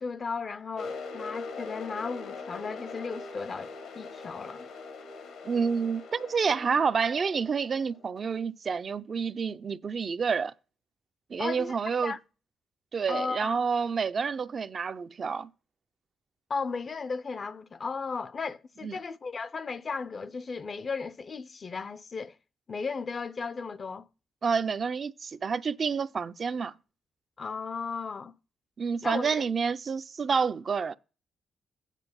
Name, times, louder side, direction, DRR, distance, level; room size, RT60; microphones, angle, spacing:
voice 1, 0.0-4.7 11.4-11.8 12.0-12.2 13.1-13.6 16.5-22.3 22.7-24.1 27.4-28.3 29.0-29.4, left 5 dB, 45° left, 0.5 m, -35 dB
sound 1, 0.8-8.4, left 3 dB, 80° left, 1.5 m, -42 dB
voice 2, 5.4-10.5 11.3-12.1 12.9-15.5 18.8-18.9 24.4-26.7 28.8-30.9, right 5 dB, 45° right, 0.4 m, -29 dB
9.1 x 4.7 x 6.8 m
cardioid pair, 80°, 0 cm